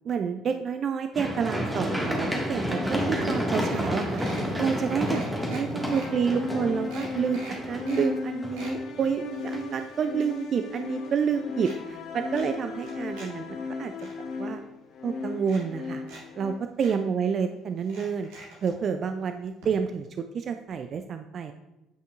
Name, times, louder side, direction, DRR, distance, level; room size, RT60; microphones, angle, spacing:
voice 1, 0.1-14.1 14.4-14.6 15.0-16.0 16.4-18.3 18.6-21.5, right 6 dB, 50° right, 8 dB, 0.3 m, -29 dB
Run, 1.1-9.0 9.5-9.6, equal, 10° right, 1.6 m, -30 dB
sound 1, 2.6-16.5, left 4 dB, 60° left, 0.7 m, -37 dB
sound 2, 3.6-4.5 5.0-6.1 6.5-6.6 6.9-8.1 8.4-8.8 9.3-10.8 11.0-11.8 12.3-13.3 13.6-14.1 14.9-15.0 15.4-16.2 16.5-16.6 16.8-16.9 17.8-18.7 19.6-19.7 20.0-20.1, right 2 dB, 75° right, 1.8 m, -45 dB
8.8 x 5.3 x 2.4 m, 0.99 s
hypercardioid pair, 55°, 0 cm